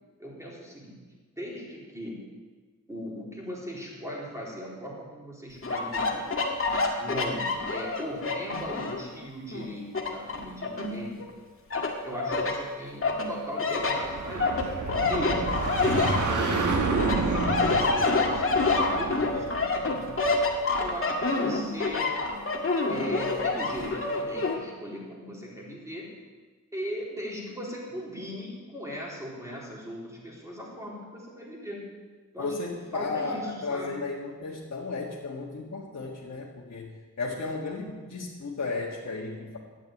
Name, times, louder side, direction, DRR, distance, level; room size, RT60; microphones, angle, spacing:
voice 1, 0.2-1.0 1.4-2.2 2.9-6.3 6.9-11.2 12.0-14.7 15.1-20.2 20.8-22.1 22.9-26.1 26.7-31.9 32.3-32.6 32.9-33.9, equal, 10° right, -5 dB, 4.2 m, -38 dB
sound 1, 5.6-9.1 9.5-11.3 11.7-12.6 13.0-16.6 17.0-24.6, left 3 dB, 45° left, 2.0 m, -27 dB
sound 2, 14.0-20.6, right 3 dB, 80° right, 1.6 m, -30 dB
voice 2, 32.4-39.6, left 3 dB, 60° left, -5 dB, 1.8 m, -34 dB
12.0 x 8.9 x 9.2 m, 1.4 s
wide cardioid pair, 145°, 30 cm